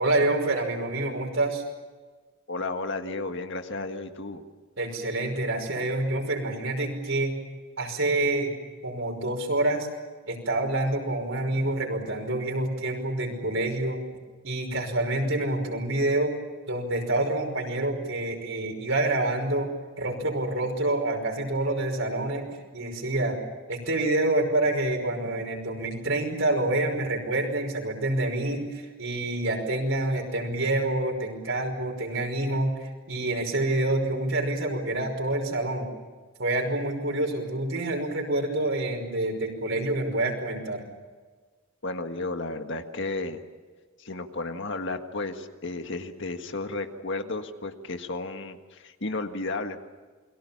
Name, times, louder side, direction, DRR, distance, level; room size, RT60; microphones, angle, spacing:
voice 1, 0.0-1.6 4.8-7.4 7.8-8.5 8.8-9.9 10.2-14.0 14.4-16.4 16.7-19.7 20.0-22.5 22.7-23.4 23.7-35.9 36.4-40.8, right 2 dB, 60° right, 4 dB, 5.5 m, -27 dB
voice 2, 2.5-4.4 41.8-43.4 44.0-49.8, left 2 dB, 55° left, 6 dB, 1.7 m, -33 dB
29.0 x 23.0 x 7.2 m, 1.4 s
head